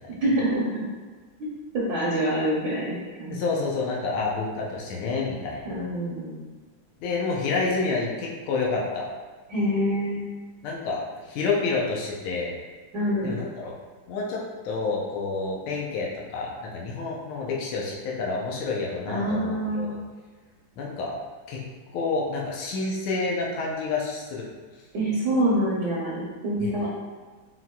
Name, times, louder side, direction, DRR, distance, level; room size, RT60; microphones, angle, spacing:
voice 1, 0.2-0.9 1.4-1.5 1.9-3.3 5.6-6.4 9.5-10.3 12.9-13.3 19.1-20.0 24.9-26.9, right 1 dB, 60° right, -7 dB, 1.2 m, -26 dB
voice 2, 3.3-5.8 7.0-9.1 10.6-11.0 11.3-12.5 13.2-13.7 14.1-20.0 20.8-21.1 21.5-21.6 21.9-24.5 26.6-26.7, left 4 dB, 85° left, -2 dB, 1.6 m, -29 dB
4.5 x 3.9 x 2.2 m, 1.4 s
omnidirectional pair, 2.3 m